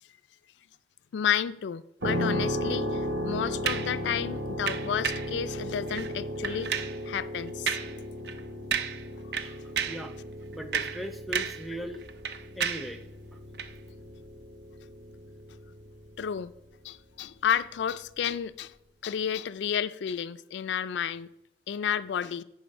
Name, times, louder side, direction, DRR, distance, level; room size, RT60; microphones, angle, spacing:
voice 1, 1.1-6.7 7.1-7.8 11.3-11.4 16.2-16.5 16.8-18.7 19.0-21.3 21.7-22.4, left 8 dB, 85° left, 0.3 m, -31 dB
sound 1, 2.0-16.7, equal, 90° right, 1.0 m, -36 dB
sound 2, 3.6-3.9 4.7-5.3 5.9-6.1 6.4-7.0 7.7-8.0 8.3-8.4 8.7-9.1 9.3-10.1 10.5-11.7 11.9-12.9 13.5-13.7, right 7 dB, 65° right, 0.5 m, -32 dB
voice 2, 9.6-10.1 10.5-12.0 12.6-13.0, equal, ahead, 0.6 m, -38 dB
10.0 x 4.6 x 5.4 m
head